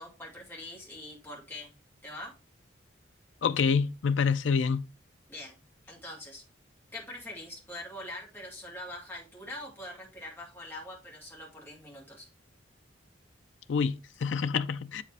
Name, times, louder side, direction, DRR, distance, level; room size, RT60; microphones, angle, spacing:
voice 1, 0.0-1.7 2.0-2.3 5.3-6.4 6.9-12.3, left 1 dB, 10° left, 2.3 m, -43 dB
voice 2, 3.4-4.8 13.7-15.0, left 5 dB, 70° left, 0.4 m, -27 dB
7.6 x 4.9 x 3.3 m
head